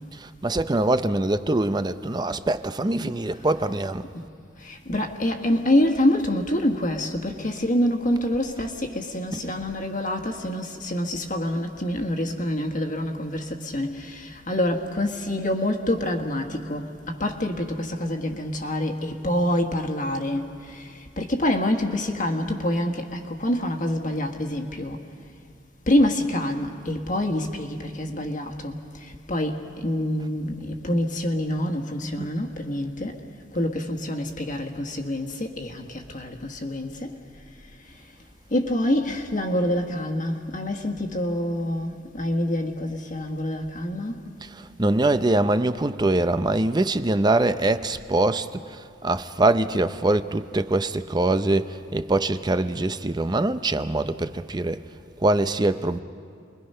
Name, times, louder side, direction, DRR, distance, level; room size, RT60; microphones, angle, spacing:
voice 1, 0.1-4.1 9.3-9.5 32.2-32.3 44.4-54.8 55.2-56.0, right 2 dB, 20° right, 0.6 m, -23 dB
voice 2, 4.6-20.9 21.2-25.0 25.9-33.2 33.5-37.1 38.5-44.2, left 1 dB, 45° left, 1.6 m, -26 dB
29.5 x 22.0 x 5.6 m
head